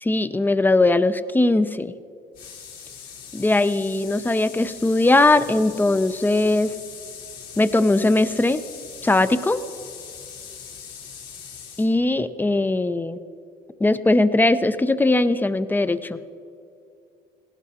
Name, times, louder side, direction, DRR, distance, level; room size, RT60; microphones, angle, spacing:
voice 1, 0.0-1.9 3.3-6.7 7.6-8.6 9.0-9.6 11.8-13.2 13.8-16.2, left 2 dB, 10° left, 13 dB, 0.5 m, -20 dB
sound 1, 2.3-11.9, left 7 dB, 75° left, 3.7 m, -41 dB
18.0 x 17.0 x 2.9 m, 2.6 s
cardioid pair, 110°, 17 cm